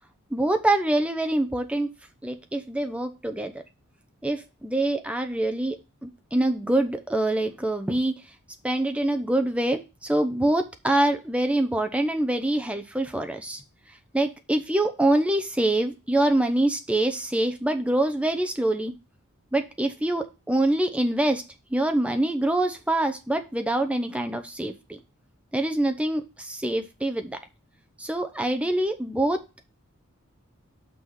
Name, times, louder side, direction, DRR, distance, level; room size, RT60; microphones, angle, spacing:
voice 1, 0.3-1.9 2.2-3.6 4.2-8.2 8.6-13.6 14.1-18.9 19.5-21.4 21.7-25.0 25.5-27.4 28.0-29.7, right 1 dB, 5° right, 7 dB, 0.8 m, -25 dB
6.1 x 4.8 x 5.4 m, 0.28 s
head